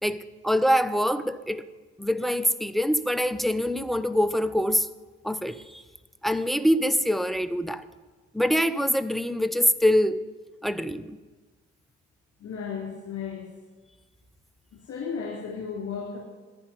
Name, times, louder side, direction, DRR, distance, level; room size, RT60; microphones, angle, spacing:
voice 1, 0.0-1.6 2.0-4.9 5.2-5.8 6.2-7.9 8.3-10.2 10.6-11.2, equal, ahead, 0.8 m, -24 dB
voice 2, 12.4-13.5 14.8-16.2, left 6 dB, 45° left, 3.4 m, -34 dB
11.5 x 10.5 x 9.9 m
figure-of-eight pair, 50°, 34 cm